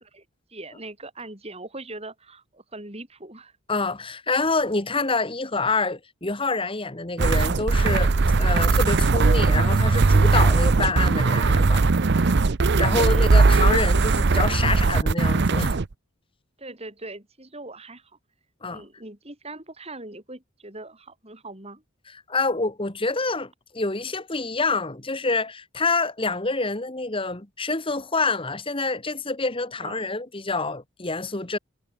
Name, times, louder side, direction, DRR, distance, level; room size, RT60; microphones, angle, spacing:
voice 1, 0.1-3.5 13.0-13.4 16.6-18.1 18.7-21.8 29.8-30.1, right 2 dB, 30° right, 4.9 m, -41 dB
voice 2, 3.7-11.8 12.2-12.3 12.8-15.8 18.6-18.8 22.3-31.6, left 3 dB, 25° left, 1.6 m, -27 dB
sound 1, 7.2-15.9, right 3 dB, 55° right, 0.6 m, -19 dB
head